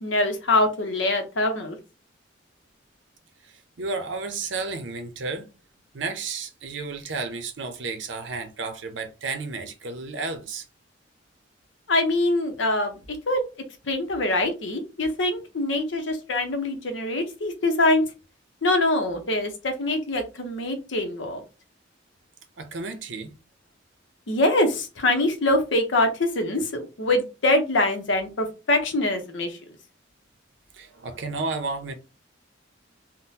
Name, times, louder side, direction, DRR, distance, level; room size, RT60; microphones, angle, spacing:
voice 1, 0.0-1.8 11.9-12.9 13.3-13.4 13.9-18.0 18.6-21.4 24.3-26.7 27.0-29.6, left 2 dB, 75° left, 0.8 m, -24 dB
voice 2, 3.4-5.5 5.9-10.7 22.6-23.3 30.7-31.9, right 3 dB, 70° right, 0.6 m, -32 dB
3.6 x 2.1 x 2.7 m
head